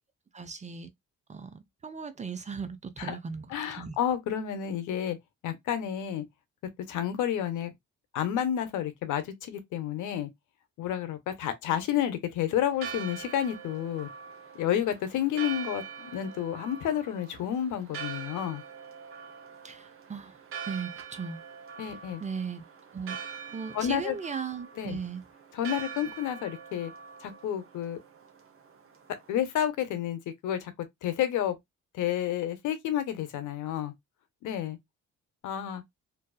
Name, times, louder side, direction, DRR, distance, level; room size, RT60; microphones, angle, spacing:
voice 1, 0.3-0.9 1.3-4.0 19.6-20.4 20.7-21.4 22.2-22.6 22.9-23.2 23.5-25.2, right 5 dB, 25° right, 0.4 m, -37 dB
voice 2, 3.5-5.2 5.4-6.2 6.9-7.7 8.1-10.3 10.8-14.1 14.5-18.6 21.8-22.2 23.7-24.2 24.8-25.0 25.5-26.9 27.2-28.0 29.3-30.7 31.0-31.5 31.9-33.9 34.4-34.8 35.4-35.8, left 10 dB, 80° left, 0.7 m, -30 dB
Church bell, 12.7-29.3, right 7 dB, 45° right, 0.8 m, -43 dB
2.6 x 2.3 x 2.2 m
cardioid pair, 90°, 30 cm